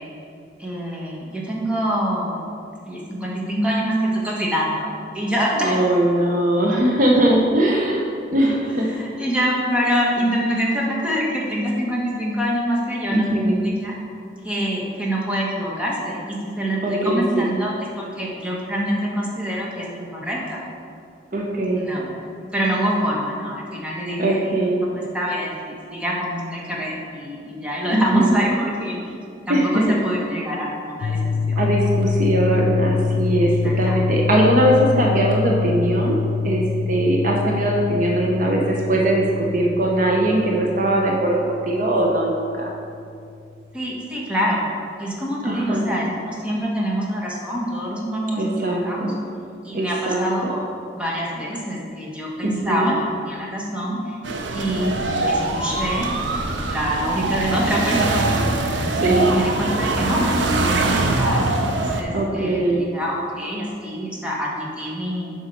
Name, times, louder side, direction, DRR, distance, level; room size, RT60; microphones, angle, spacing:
voice 1, 0.6-2.4 2.9-4.9 5.1-5.8 8.8-14.0 14.4-20.6 21.7-24.4 24.8-29.0 29.5-31.6 33.4-34.3 43.7-44.7 45.0-49.1 49.6-50.6 50.9-52.9 53.2-54.2 54.5-55.0 55.3-56.1 56.6-58.4 59.0-61.5 61.7-65.3, equal, 5° right, -4 dB, 1.2 m, -25 dB
voice 2, 5.6-8.0 8.3-8.9 13.1-13.6 16.8-17.5 21.3-21.8 24.2-24.8 27.9-28.4 29.5-29.9 31.6-36.2 36.4-42.7 45.4-45.9 48.4-49.1 49.7-50.6 52.4-52.9 58.9-59.3 62.1-62.8, right 1 dB, 45° right, -1 dB, 0.7 m, -20 dB
sound 1, 31.0-42.9, left 5 dB, 80° left, 0.3 m, -25 dB
sound 2, 54.2-62.0, right 2 dB, 85° right, 0.7 m, -22 dB
7.3 x 5.5 x 5.2 m, 2.4 s
head